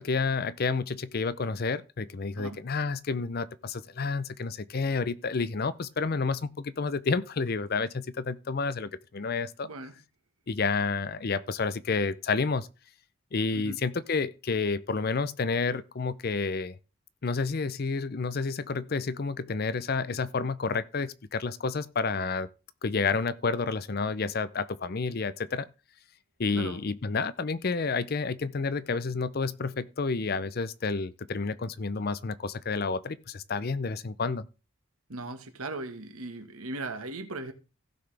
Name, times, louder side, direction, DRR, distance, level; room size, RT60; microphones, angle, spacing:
voice 1, 0.0-9.7 10.5-12.7 13.3-16.8 17.2-22.5 22.8-25.7 26.4-34.5, left 4 dB, 45° left, 0.5 m, -30 dB
voice 2, 9.6-9.9 13.5-13.8 26.5-26.8 35.1-37.5, right 2 dB, 85° right, 1.6 m, -38 dB
16.0 x 5.9 x 3.4 m
head